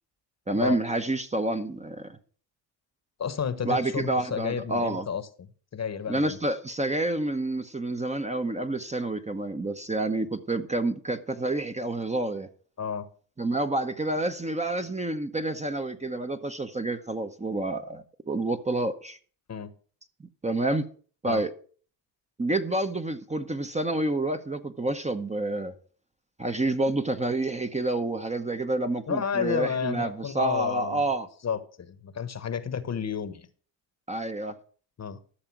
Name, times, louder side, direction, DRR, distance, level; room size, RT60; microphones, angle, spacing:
voice 1, 0.5-2.2 3.6-5.1 6.1-12.5 13.4-19.2 20.4-20.8 21.2-21.5 22.4-25.7 26.4-31.3 34.1-34.5, right 2 dB, 15° right, 0.9 m, -28 dB
voice 2, 3.2-5.3 5.7-6.4 12.8-13.1 19.5-19.7 21.3-21.4 29.1-31.0 31.4-33.5 35.0-35.2, left 7 dB, 35° left, 1.1 m, -31 dB
13.0 x 6.7 x 6.0 m
cardioid pair, 100°, 47 cm